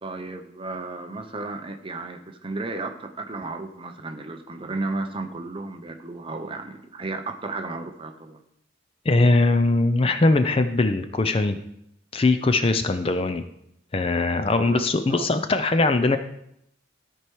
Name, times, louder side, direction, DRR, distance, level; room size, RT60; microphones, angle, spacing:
voice 1, 0.0-8.4 14.6-14.8 15.1-15.3, right 3 dB, 25° right, 6 dB, 0.6 m, -33 dB
voice 2, 9.1-11.6 12.1-13.4 13.9-16.2, left 2 dB, 30° left, 9 dB, 0.4 m, -21 dB
13.0 x 4.6 x 4.6 m, 0.76 s
head